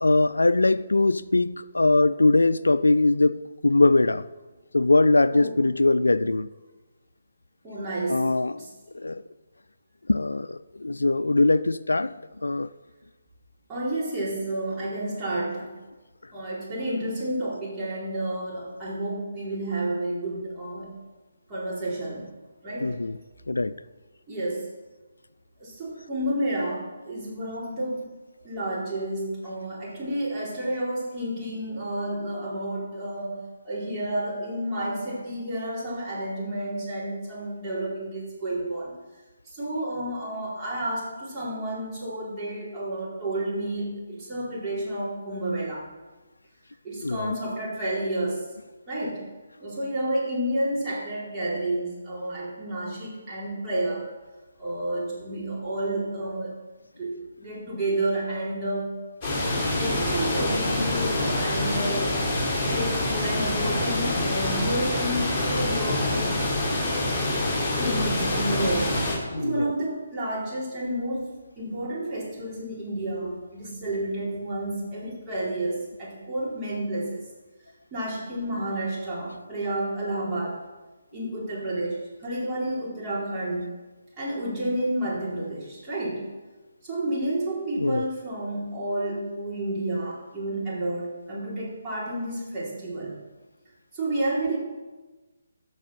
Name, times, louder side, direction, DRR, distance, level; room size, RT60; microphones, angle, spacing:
voice 1, 0.0-4.2 4.7-6.5 8.1-8.6 8.9-9.2 10.1-12.1 12.4-12.7 22.8-23.1 23.5-23.7 47.0-47.3 69.3-69.7 87.8-88.1, left 2 dB, 80° left, 0.3 m, -21 dB
voice 2, 7.6-8.3 8.5-8.7 13.7-15.8 16.3-20.9 21.5-22.2 22.6-22.9 24.3-24.7 25.6-28.1 28.4-33.4 33.6-38.9 39.5-45.9 46.8-48.4 48.9-49.2 49.6-54.1 54.6-56.5 57.0-59.0 59.6-66.9 67.7-69.0 69.4-71.3 71.6-77.2 77.9-80.6 81.1-83.7 84.2-86.3 86.8-93.2 93.9-94.6, right 1 dB, 20° right, 4.2 m, -30 dB
sound 1, 59.2-69.2, left 1 dB, 20° left, 4.0 m, -26 dB
14.5 x 5.5 x 5.8 m
figure-of-eight pair, 145°, 0 cm